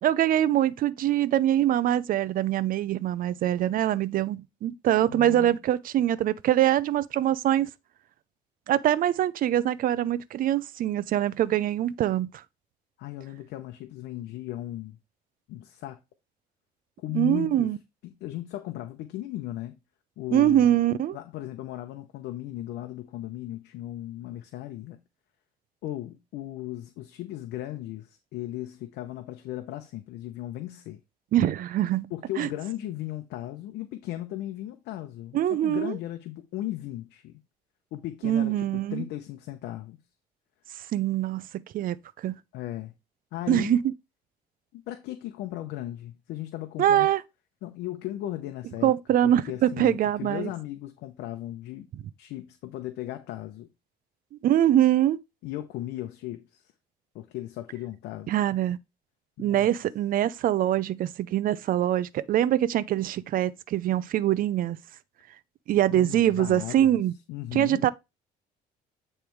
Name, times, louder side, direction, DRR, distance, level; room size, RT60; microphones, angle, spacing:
voice 1, 0.0-7.7 8.7-12.4 17.1-17.8 20.3-21.2 31.3-32.1 32.4-32.5 35.3-35.9 38.2-39.1 40.9-42.4 43.5-43.8 46.8-47.2 48.8-50.5 51.9-52.0 54.4-55.2 58.3-58.8 59.4-64.8 65.7-67.1 67.5-67.9, right 12 dB, 55° right, 0.5 m, -24 dB
voice 2, 5.1-5.6 13.0-15.0 15.5-16.0 17.0-17.7 18.2-19.8 20.2-20.7 21.1-25.0 25.8-31.0 32.1-37.3 37.9-40.0 42.5-42.9 43.3-43.8 44.7-47.1 47.6-48.9 49.2-51.9 52.2-53.7 55.4-56.6 57.1-58.3 59.4-59.7 65.9-67.0 67.3-67.9, left 14 dB, 80° left, 0.8 m, -36 dB
8.8 x 3.3 x 4.6 m
cardioid pair, 110°, 17 cm